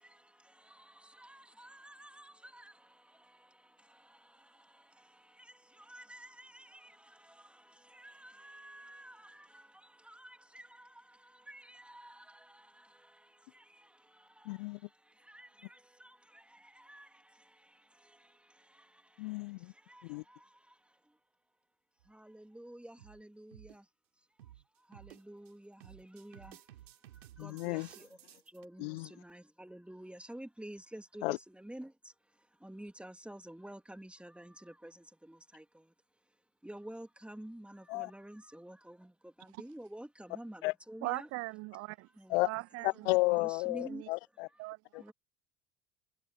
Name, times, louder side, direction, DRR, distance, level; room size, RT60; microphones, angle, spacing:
voice 1, 1.3-2.3 5.9-6.6 8.2-9.1 10.1-10.2 11.5-11.6 16.9-17.0 22.2-23.5 25.3-26.5 27.4-28.1 28.5-28.9 29.2-31.9 32.6-34.5 35.5-35.6 36.6-39.0 39.6-40.6 40.9-41.3 43.4-44.0 45.1-45.2, right 1 dB, 5° right, 3.3 m, -48 dB
voice 2, 14.5-14.8 19.2-19.7 20.0-20.2 27.4-27.9 28.8-29.1 31.2-31.4 37.9-38.1 40.6-40.7 42.3-42.5 42.8-44.5 44.9-45.0, left 26 dB, 65° left, 0.7 m, -32 dB
sound 1, 22.0-22.3 23.0-23.2 23.5-23.8 24.4-24.6 24.9-25.5 25.8-28.7, right 13 dB, 75° right, 4.6 m, -55 dB
voice 3, 41.0-42.1 42.4-42.9 43.9-44.1 44.6-44.8, right 23 dB, 50° right, 0.5 m, -39 dB
figure-of-eight pair, 65°, 31 cm